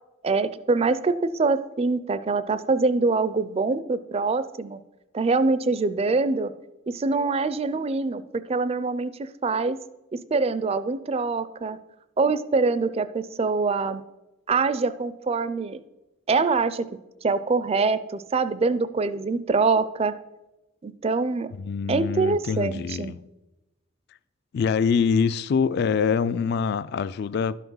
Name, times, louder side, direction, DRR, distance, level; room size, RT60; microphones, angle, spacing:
voice 1, 0.2-4.8 5.1-6.5 6.9-9.8 10.3-11.8 12.2-14.0 14.5-15.8 16.3-16.9 17.2-20.1 20.8-21.5 21.9-23.1, right 4 dB, 30° right, 0.4 m, -24 dB
voice 2, 21.5-23.2 24.5-27.6, left 6 dB, 55° left, 0.3 m, -24 dB
12.0 x 5.8 x 5.5 m
head